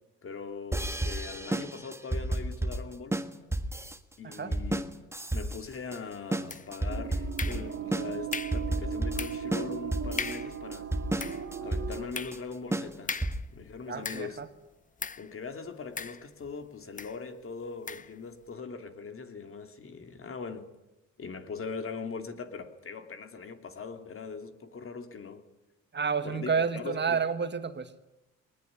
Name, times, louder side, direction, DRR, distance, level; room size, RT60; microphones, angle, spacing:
voice 1, 0.2-3.2 4.2-5.0 5.3-10.9 11.6-13.2 13.5-14.4 15.2-20.7 21.2-25.4 26.2-27.2, left 5 dB, 45° left, 7 dB, 2.8 m, -41 dB
sound 1, 0.7-13.6, right 1 dB, 10° right, 1.5 m, -32 dB
sound 2, 6.5-6.9 7.4-7.9 8.3-8.7 9.2-9.5 9.8-9.9 10.2-10.6 11.0-14.5 15.0-15.3 16.0-16.6 17.0-17.2 17.9-18.2, left 5 dB, 25° left, 0.8 m, -38 dB
sound 3, 6.9-12.1, right 7 dB, 50° right, 2.4 m, -37 dB
voice 2, 13.9-14.5 25.9-27.9, right 6 dB, 35° right, 11 dB, 1.6 m, -30 dB
21.0 x 20.0 x 9.9 m, 0.98 s
cardioid pair, 90°, 30 cm